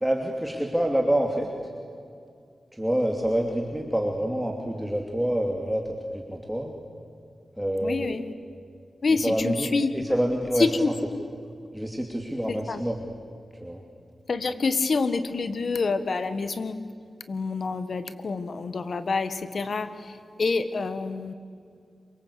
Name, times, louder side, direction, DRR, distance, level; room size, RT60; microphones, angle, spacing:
voice 1, 0.0-1.7 2.7-6.7 7.6-8.1 9.1-10.7 11.7-13.1 13.6-13.8, right 1 dB, 5° right, 1 dB, 2.9 m, -27 dB
voice 2, 7.8-8.2 9.0-9.9 10.6-11.2 12.5-12.8 14.3-16.8 17.3-21.3, left 4 dB, 60° left, 11 dB, 1.7 m, -27 dB
27.0 x 24.0 x 8.5 m, 2.3 s
cardioid pair, 70°, 0 cm